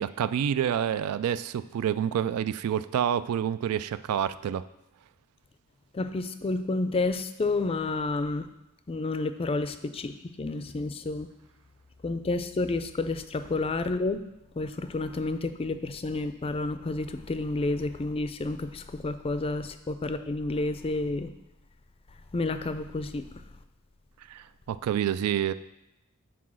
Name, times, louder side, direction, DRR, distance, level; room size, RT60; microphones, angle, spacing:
voice 1, 0.0-4.6 24.3-25.5, right 9 dB, 85° right, 16 dB, 0.3 m, -28 dB
voice 2, 5.9-8.5 8.9-11.3 12.0-14.2 14.6-21.3 22.3-23.3, left 2 dB, 25° left, 10 dB, 0.4 m, -30 dB
6.0 x 4.7 x 6.2 m, 0.93 s
head